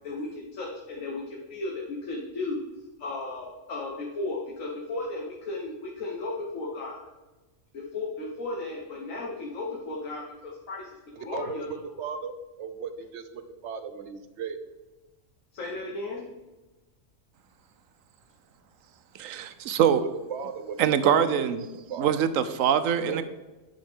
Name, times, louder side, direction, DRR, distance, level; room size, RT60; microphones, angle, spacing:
voice 1, 0.0-2.6 3.0-7.1 7.7-10.8 11.2-11.7 15.5-16.2, left 2 dB, 80° left, -2 dB, 1.6 m, -35 dB
voice 2, 11.2-12.3 12.6-14.6 20.3-21.5 21.9-22.1 23.1-23.2, right 6 dB, 65° right, 9 dB, 1.0 m, -36 dB
voice 3, 19.1-20.0 20.8-21.6 22.0-23.2, right 8 dB, 85° right, 12 dB, 1.1 m, -23 dB
9.9 x 6.3 x 3.6 m, 1.1 s
omnidirectional pair, 1.3 m